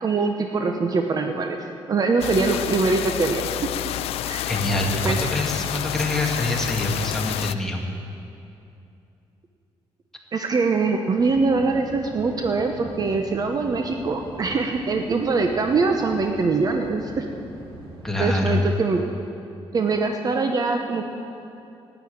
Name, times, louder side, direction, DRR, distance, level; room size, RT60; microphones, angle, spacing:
voice 1, 0.0-1.6 1.9-3.4 4.2-4.5 4.9-5.2 10.3-17.2 18.2-19.0 19.7-21.0, right 4 dB, 40° right, 4 dB, 0.9 m, -23 dB
sound 1, 2.2-7.5, left 13 dB, 90° left, 0.4 m, -29 dB
voice 2, 4.5-7.9 18.0-18.6, left 1 dB, 5° left, 0 dB, 1.9 m, -25 dB
sound 2, 11.2-18.5, right 1 dB, 65° right, 2.3 m, -42 dB
12.0 x 9.3 x 9.3 m, 2.7 s
cardioid pair, 115°, 10 cm